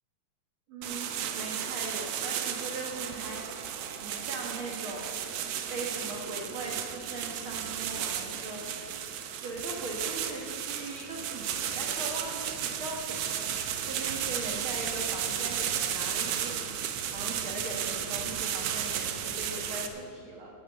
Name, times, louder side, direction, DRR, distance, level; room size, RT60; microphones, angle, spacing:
voice 1, 0.7-3.4 4.0-5.1 5.7-8.6 9.4-13.5 13.8-20.5, right 2 dB, 60° right, -1 dB, 1.4 m, -40 dB
sound 1, 0.8-19.9, right 9 dB, 85° right, 1.4 m, -34 dB
12.0 x 9.6 x 7.8 m, 2.5 s
omnidirectional pair, 4.1 m